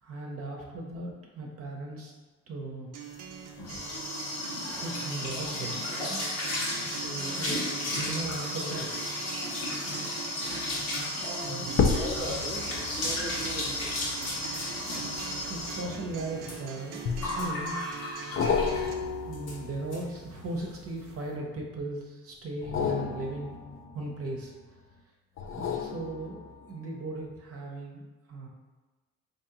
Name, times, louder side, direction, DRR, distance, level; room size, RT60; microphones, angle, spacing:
voice 1, 0.0-2.1 2.5-2.9 4.7-5.8 6.1-6.3 7.2-8.9 11.4-12.0 15.5-17.9 19.3-23.5 23.9-24.5 25.8-28.5, right 2 dB, 50° right, -1 dB, 0.7 m, -37 dB
Acoustic guitar, 2.9-18.9, right 7 dB, 90° right, 0.5 m, -43 dB
sound 1, 3.2-18.9 19.3-19.6 19.9-20.0 20.3-20.7, left 1 dB, 90° left, 1.2 m, -34 dB
voice 2, 7.0-7.4 11.3-14.0 14.7-15.0, right 1 dB, 15° right, -1 dB, 0.7 m, -40 dB
sound 2, 10.5-10.8 11.7-16.4 17.1-17.7 18.4-21.3 22.5-24.6 25.4-26.8 27.3-27.4, left 5 dB, 45° left, 0.4 m, -33 dB
3.6 x 2.9 x 2.9 m, 1.2 s
cardioid pair, 90°, 30 cm